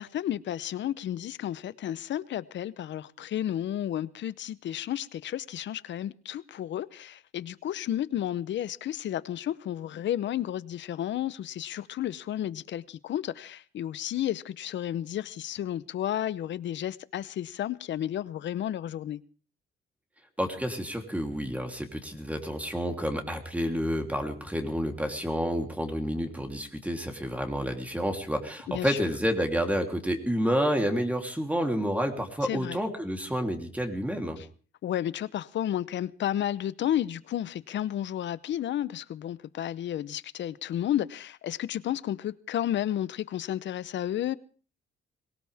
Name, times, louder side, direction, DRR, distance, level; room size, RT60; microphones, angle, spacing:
voice 1, 0.0-19.2 28.7-29.0 32.4-32.8 34.4-34.5 34.8-44.4, left 11 dB, 65° left, 0.9 m, -32 dB
voice 2, 20.4-34.4, equal, 5° right, 3.3 m, -29 dB
23.0 x 17.5 x 3.6 m
cardioid pair, 90°, 20 cm